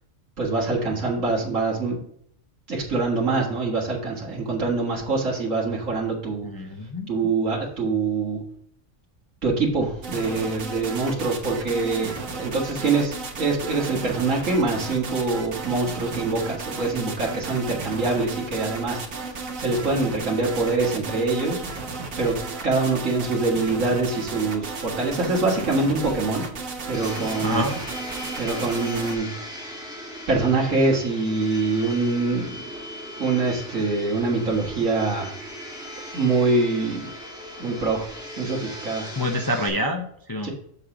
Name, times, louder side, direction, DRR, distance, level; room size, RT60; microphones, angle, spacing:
voice 1, 0.4-2.0 2.7-6.5 7.1-8.4 9.4-19.0 19.6-21.6 22.2-22.4 22.6-26.4 26.9-27.6 28.4-29.3 30.3-32.6 33.2-35.3 36.1-37.1 37.6-38.1 38.4-39.1 40.4-40.5, right 3 dB, 70° right, -3 dB, 2.1 m, -24 dB
voice 2, 6.4-7.3 27.4-27.8 39.2-40.5, left 1 dB, 25° left, 3 dB, 0.5 m, -27 dB
sound 1, 10.0-29.2, right 4 dB, 90° right, 1.6 m, -34 dB
Domestic sounds home sounds, 26.9-39.7, equal, 5° right, 1.9 m, -38 dB
7.1 x 6.6 x 3.8 m, 0.67 s
omnidirectional pair, 1.4 m